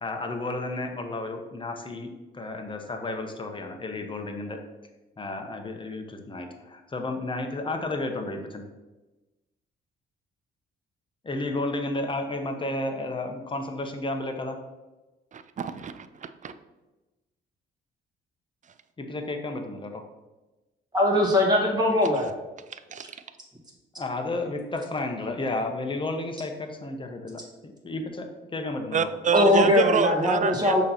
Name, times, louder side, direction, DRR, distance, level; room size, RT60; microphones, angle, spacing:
voice 1, 0.0-4.6 5.2-8.6 11.2-14.6 19.0-20.0 24.0-29.1, left 2 dB, 25° left, 4 dB, 1.0 m, -32 dB
voice 2, 15.3-16.5 22.7-23.1 28.9-30.8, right 6 dB, 40° right, 11 dB, 0.5 m, -27 dB
voice 3, 20.9-22.3 29.3-30.8, left 1 dB, 20° right, -1 dB, 1.9 m, -21 dB
6.4 x 3.1 x 5.7 m, 1.1 s
cardioid pair, 90°, 20 cm